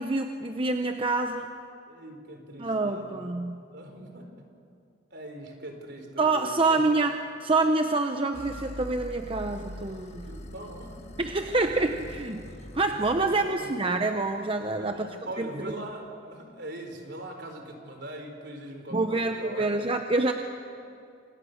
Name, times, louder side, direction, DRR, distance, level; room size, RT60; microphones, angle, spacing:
voice 1, 0.0-1.5 2.6-3.6 6.2-7.1 7.4-10.3 11.2-12.4 12.7-15.1 15.4-15.5 18.9-20.3, right 3 dB, 30° right, 5 dB, 0.9 m, -26 dB
voice 2, 1.9-3.4 3.7-4.4 5.1-6.8 10.2-11.1 12.1-12.2 12.9-13.8 14.7-19.7, right 1 dB, 60° right, 4 dB, 4.1 m, -41 dB
sound 1, 8.3-13.5, left 1 dB, 35° left, 1.5 m, -43 dB
27.0 x 27.0 x 6.6 m, 2.4 s
head